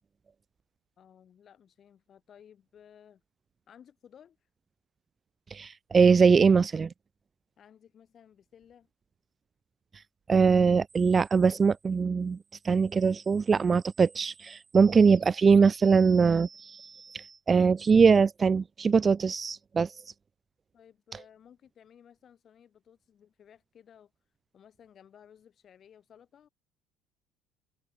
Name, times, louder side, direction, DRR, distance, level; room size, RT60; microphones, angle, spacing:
voice 1, 1.0-3.2 3.7-4.4 7.6-8.9 20.7-24.1 24.5-26.5, left 8 dB, 35° left, 4.6 m, -57 dB
voice 2, 5.5-6.9 10.3-12.4 12.6-19.9, right 5 dB, 20° right, 0.3 m, -22 dB
cardioid pair, 155°, 0 cm